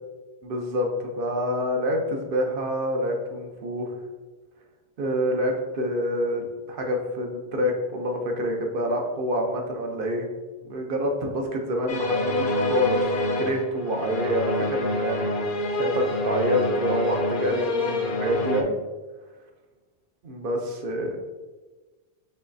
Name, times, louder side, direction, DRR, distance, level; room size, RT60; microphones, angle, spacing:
voice 1, 0.4-4.0 5.0-10.3 10.6-13.1 13.4-15.3 15.8-18.7 20.2-21.2, equal, 60° right, 2 dB, 0.9 m, -27 dB
sound 1, 11.9-18.6, left 1 dB, 60° left, 0.7 m, -27 dB
5.7 x 3.1 x 2.7 m, 1.3 s
omnidirectional pair, 1.1 m